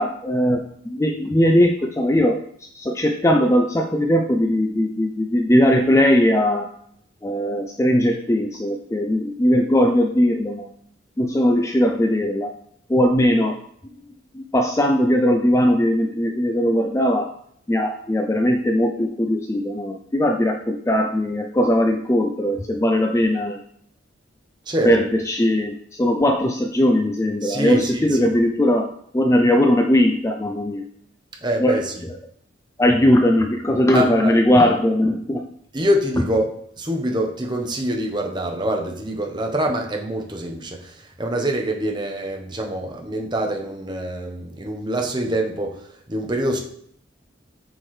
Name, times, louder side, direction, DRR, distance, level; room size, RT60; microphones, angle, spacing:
voice 1, 0.0-2.4 2.7-6.7 7.2-10.7 11.2-12.5 12.9-13.6 14.3-17.3 17.7-23.6 24.8-28.9 29.1-30.9 31.6-31.8 32.8-35.5, equal, 15° left, 4 dB, 0.3 m, -19 dB
voice 2, 27.4-28.3 31.4-32.1 33.9-34.4 35.7-36.5 36.8-46.6, right 1 dB, 20° right, 2 dB, 0.9 m, -25 dB
7.6 x 4.5 x 3.2 m, 0.67 s
head